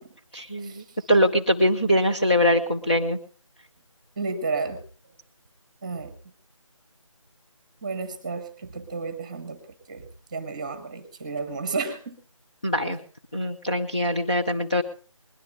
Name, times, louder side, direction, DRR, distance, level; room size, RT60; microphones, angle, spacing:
voice 1, 0.3-3.2 12.6-13.0 13.3-14.8, equal, 15° left, -3 dB, 0.7 m, -22 dB
voice 2, 4.2-4.8 5.8-6.1 7.8-9.6 9.9-12.2, right 4 dB, 15° right, 11 dB, 1.2 m, -32 dB
21.0 x 11.5 x 3.6 m, 0.37 s
figure-of-eight pair, 165°, 17 cm